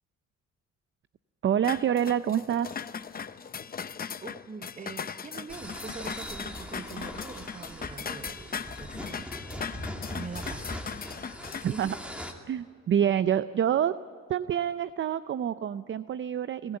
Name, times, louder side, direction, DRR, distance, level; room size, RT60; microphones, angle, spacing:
voice 1, 1.4-3.0 11.6-12.0 12.5-14.0 14.3-16.8, right 9 dB, 40° right, 15 dB, 0.5 m, -27 dB
sound 1, 1.6-11.6, left 6 dB, 30° left, 0.7 m, -39 dB
voice 2, 4.2-9.3 9.5-10.8 11.7-11.9, right 4 dB, 25° right, 12 dB, 1.0 m, -44 dB
sound 2, 5.5-12.3, equal, 5° right, 2.4 m, -41 dB
22.0 x 15.0 x 8.8 m, 2.1 s
cardioid pair, 90°, 30 cm